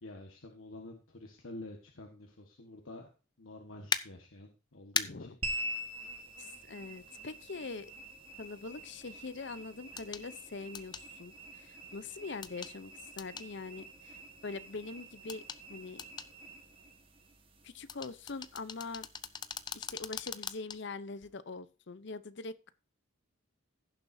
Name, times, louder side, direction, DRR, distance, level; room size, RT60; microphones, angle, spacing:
voice 1, 0.0-3.1 3.4-5.4, left 2 dB, 85° left, 2 dB, 1.5 m, -48 dB
sound 1, 3.9-4.0 4.9-5.1 7.1-7.2 10.0-10.2 10.7-11.0 12.4-12.7 13.2-13.5 15.3-15.6 16.0-16.3 17.9-20.8 21.2-21.3, left 6 dB, 20° left, 0.5 m, -37 dB
voice 2, 5.0-5.4 6.4-7.9 8.4-15.4 15.7-16.0 17.6-19.1 19.7-22.7, left 3 dB, 60° left, 14 dB, 0.7 m, -43 dB
sound 2, 5.4-20.0, equal, 25° right, 1.5 m, -46 dB
16.5 x 7.2 x 2.7 m, 0.33 s
head